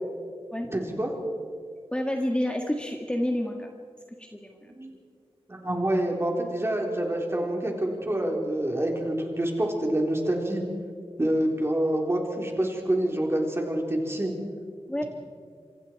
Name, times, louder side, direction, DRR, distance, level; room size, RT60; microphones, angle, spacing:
voice 1, 0.7-1.1 4.7-4.9 5.5-10.6 11.2-14.3, right 1 dB, 25° right, 0 dB, 4.1 m, -27 dB
voice 2, 1.9-3.7 4.2-4.7 14.9-15.0, left 1 dB, 10° left, 2 dB, 1.6 m, -29 dB
27.0 x 24.5 x 4.7 m, 2.1 s
wide cardioid pair, 100°, 10 cm